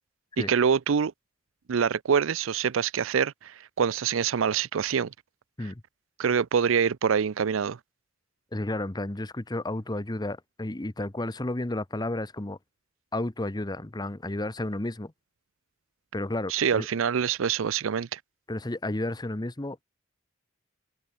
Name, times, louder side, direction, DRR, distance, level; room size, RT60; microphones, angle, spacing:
voice 1, 0.4-1.1 1.7-5.1 6.2-7.8 16.5-18.2, right 7 dB, 70° right, 0.5 m, -25 dB
voice 2, 8.5-12.6 13.1-15.1 16.1-16.9 18.5-19.8, left 1 dB, 20° left, 0.9 m, -32 dB
head